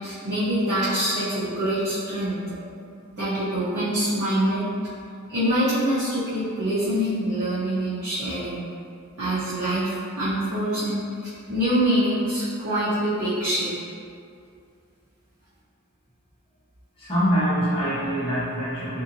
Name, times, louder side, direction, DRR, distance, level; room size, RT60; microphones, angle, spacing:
voice 1, 0.0-2.4 3.1-4.7 5.3-8.6 9.2-11.0 11.5-13.7, right 1 dB, 50° right, -13 dB, 0.8 m, -25 dB
voice 2, 17.0-19.0, equal, 25° left, -12 dB, 1.1 m, -24 dB
2.7 x 2.6 x 2.6 m, 2.4 s
head